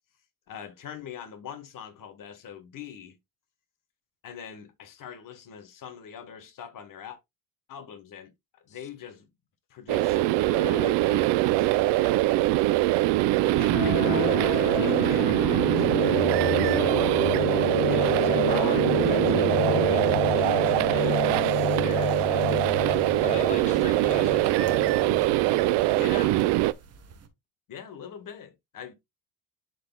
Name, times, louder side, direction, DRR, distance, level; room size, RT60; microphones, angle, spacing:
voice 1, 0.5-3.2 4.2-7.2 7.7-8.3 8.6-9.3 9.7-12.2 13.4-16.0 16.6-17.2 17.9-21.4 21.8-22.7 25.9-26.4 27.7-28.9, left 8 dB, 50° left, 1.3 m, -42 dB
sound 1, 9.9-26.7, right 17 dB, 80° right, 0.6 m, -23 dB
sound 2, 13.7-25.8, left 10 dB, 75° left, 0.9 m, -31 dB
sound 3, 21.0-27.3, right 5 dB, 35° right, 1.1 m, -49 dB
voice 2, 23.2-24.8, left 5 dB, 15° left, 0.6 m, -38 dB
11.0 x 4.0 x 2.3 m
cardioid pair, 120°, 42 cm